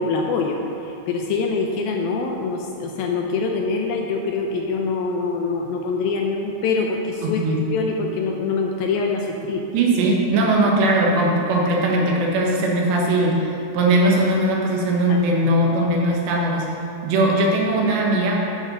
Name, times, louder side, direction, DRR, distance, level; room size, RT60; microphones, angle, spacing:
voice 1, 0.0-9.7 15.1-15.6, left 4 dB, 80° left, 1 dB, 2.3 m, -24 dB
voice 2, 7.2-7.6 9.7-16.7 17.0-18.4, right 1 dB, 90° right, -2 dB, 3.8 m, -19 dB
12.5 x 7.4 x 5.8 m, 2.7 s
omnidirectional pair, 4.9 m